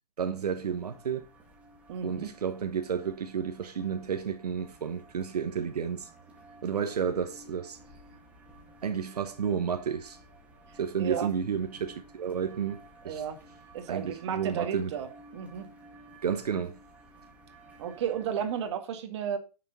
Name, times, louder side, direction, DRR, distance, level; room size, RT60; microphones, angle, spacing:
voice 1, 0.2-1.3 2.0-6.1 6.6-7.8 8.8-10.2 10.8-13.2 13.9-14.9 16.2-16.8, right 7 dB, 75° right, 1.2 m, -31 dB
sound 1, 0.6-18.7, right 2 dB, 5° right, 2.0 m, -54 dB
voice 2, 1.9-2.3 11.0-11.3 13.0-13.4 13.7-15.7 17.8-19.4, right 8 dB, 45° right, 1.9 m, -33 dB
9.4 x 6.7 x 4.0 m
hypercardioid pair, 145°, 20 cm